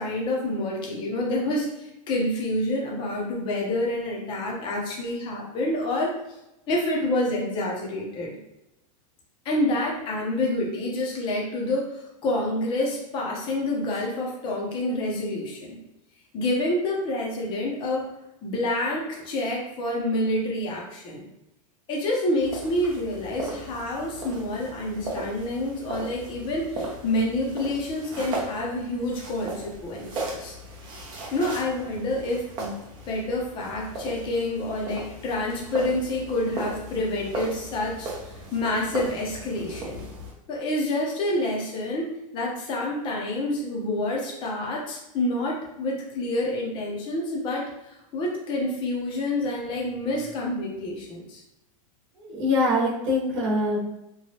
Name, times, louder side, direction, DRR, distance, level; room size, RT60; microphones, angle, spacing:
voice 1, 0.0-6.2 6.7-8.4 9.4-15.8 16.3-18.0 18.4-21.2 21.9-30.5 31.3-32.7 33.1-40.0 40.5-51.4, left 1 dB, 25° left, -2 dB, 0.6 m, -28 dB
sound 1, 22.4-40.3, right 2 dB, 25° right, 0.6 m, -37 dB
voice 2, 52.2-53.8, left 1 dB, 55° right, -5 dB, 1.0 m, -24 dB
3.0 x 2.2 x 2.8 m, 0.93 s
supercardioid pair, 155°, 18 cm